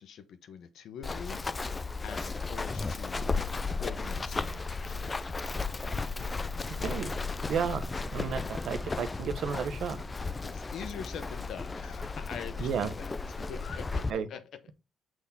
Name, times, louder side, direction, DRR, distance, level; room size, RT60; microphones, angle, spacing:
voice 1, 0.0-1.8 2.0-3.4 3.8-5.7 10.4-14.4, left 8 dB, 75° left, 0.8 m, -44 dB
Run, 1.0-14.1, left 3 dB, 25° left, 0.4 m, -34 dB
voice 2, 6.8-7.1 7.4-10.0 12.6-12.9 14.1-14.3, right 7 dB, 70° right, 1.0 m, -33 dB
6.2 x 3.6 x 5.7 m
cardioid pair, 90°, 0 cm